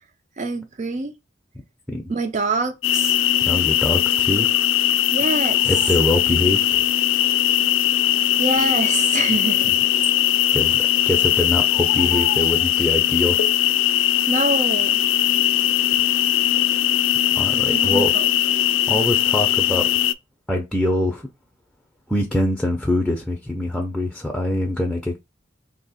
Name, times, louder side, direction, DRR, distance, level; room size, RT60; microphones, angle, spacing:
voice 1, 0.4-1.2 2.1-3.1 5.1-5.7 8.4-9.9 10.4-10.5 14.0-15.0 17.5-18.3, right 3 dB, 40° right, 0.6 m, -26 dB
sound 1, 2.8-20.1, left 12 dB, 80° left, 0.3 m, -19 dB
voice 2, 3.5-4.6 5.7-6.8 10.5-10.8 11.1-13.4 17.3-18.1 18.9-19.9 20.5-21.3 22.1-25.2, left 1 dB, ahead, 0.5 m, -23 dB
2.9 x 2.8 x 4.1 m
head